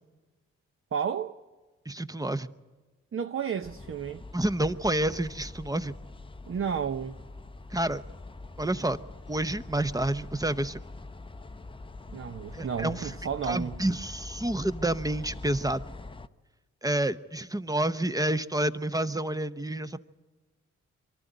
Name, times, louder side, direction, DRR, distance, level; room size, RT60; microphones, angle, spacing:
voice 1, 0.9-1.4 3.1-4.2 6.5-7.2 12.1-13.8, right 7 dB, 40° right, 0.7 m, -32 dB
voice 2, 1.9-2.5 4.3-5.9 7.7-8.0 8.6-9.0 9.3-10.8 12.5-13.1 13.5-15.9 16.8-20.0, right 1 dB, 10° right, 0.8 m, -29 dB
sound 1, 3.6-16.3, left 3 dB, 15° left, 0.7 m, -44 dB
23.5 x 13.0 x 9.2 m
hypercardioid pair, 40°, 33 cm